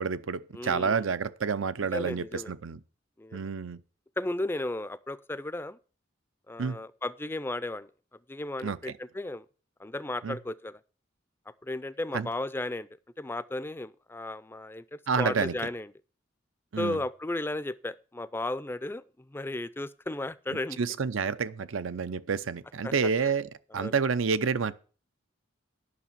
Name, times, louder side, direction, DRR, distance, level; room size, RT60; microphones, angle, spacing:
voice 1, 0.0-2.8 3.3-3.8 6.6-6.8 8.6-8.8 10.2-10.4 12.1-12.3 15.1-15.6 16.7-17.0 20.8-24.7, right 5 dB, 85° right, 0.6 m, -29 dB
voice 2, 0.5-1.1 1.9-2.5 3.2-3.5 4.2-5.8 6.5-7.9 8.3-9.5 9.8-10.8 11.6-12.9 13.2-15.9 16.8-20.8 22.8-22.9 23.2-23.3 23.7-23.9, left 2 dB, 10° left, 0.4 m, -34 dB
9.8 x 6.0 x 7.2 m
head